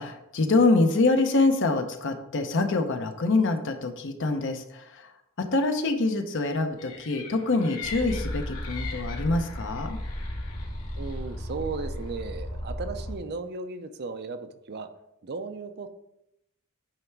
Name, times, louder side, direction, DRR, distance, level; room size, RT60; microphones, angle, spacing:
voice 1, 0.0-5.1 5.4-10.0, left 3 dB, 60° left, 6 dB, 0.8 m, -25 dB
sound 1, 6.8-12.2, left 5 dB, 90° left, 2.0 m, -43 dB
sound 2, 7.8-13.2, equal, 35° left, 1.1 m, -34 dB
voice 2, 10.9-14.9 15.2-15.9, right 4 dB, 50° right, 9 dB, 0.5 m, -36 dB
8.9 x 3.4 x 4.6 m, 0.83 s
head